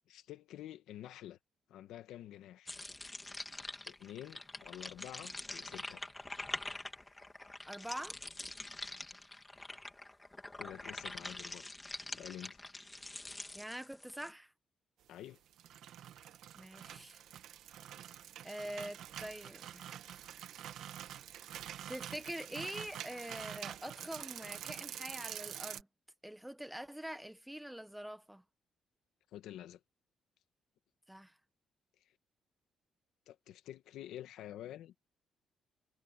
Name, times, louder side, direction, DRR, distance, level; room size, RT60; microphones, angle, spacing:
voice 1, 0.1-1.4 1.7-2.8 3.8-6.0 10.6-11.8 12.0-12.6 15.1-15.4 29.3-29.8 33.3-35.0, left 12 dB, 85° left, 1.8 m, -49 dB
sound 1, 2.7-14.3, left 2 dB, 15° left, 2.5 m, -45 dB
voice 2, 7.7-8.2 13.5-14.5 16.5-17.2 18.4-19.9 21.9-25.9 26.2-28.4 31.1-31.3, equal, 5° right, 1.5 m, -44 dB
sound 2, 15.4-25.8, right 11 dB, 80° right, 1.6 m, -47 dB
cardioid pair, 90°, 0 cm